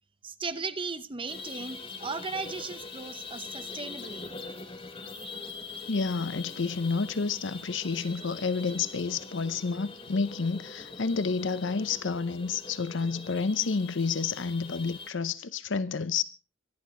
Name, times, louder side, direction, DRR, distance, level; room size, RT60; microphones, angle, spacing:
voice 1, 0.2-4.3, right 4 dB, 30° right, 0.9 m, -37 dB
sound 1, 1.3-15.1, left 4 dB, 30° left, 2.6 m, -43 dB
voice 2, 5.9-16.2, left 4 dB, 75° left, 0.7 m, -30 dB
26.0 x 11.0 x 3.7 m
head